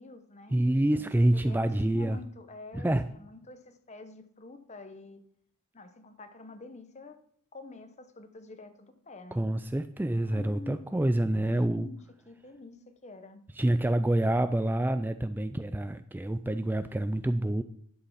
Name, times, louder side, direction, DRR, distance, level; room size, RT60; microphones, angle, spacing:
voice 1, 0.0-0.6 0.9-5.2 5.7-7.2 7.5-9.5 10.3-10.9 11.5-12.0 12.3-13.4, left 2 dB, 35° left, 10 dB, 0.9 m, -47 dB
voice 2, 0.5-2.2 2.7-3.0 9.3-11.9 13.6-17.6, right 1 dB, 10° right, 11 dB, 0.3 m, -27 dB
11.0 x 6.7 x 5.6 m, 0.65 s
head